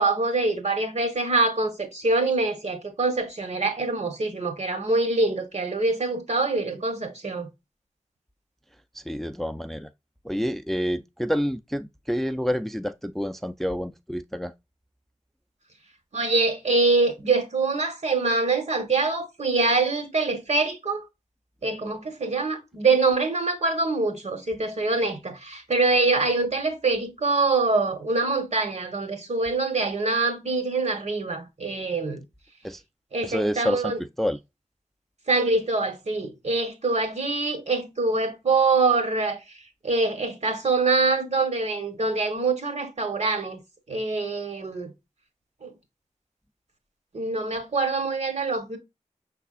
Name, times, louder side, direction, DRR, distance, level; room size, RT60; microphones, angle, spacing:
voice 1, 0.0-7.5 16.1-21.0 21.6-32.2 33.1-34.0 35.3-39.4 39.8-43.6 43.9-44.9 45.6-45.7 47.1-48.8, right 3 dB, 60° right, 1.2 m, -24 dB
voice 2, 8.9-9.9 10.2-14.5 32.6-32.8 33.2-34.4, equal, ahead, 0.3 m, -28 dB
5.5 x 3.4 x 2.4 m
wide cardioid pair, 60°, 13 cm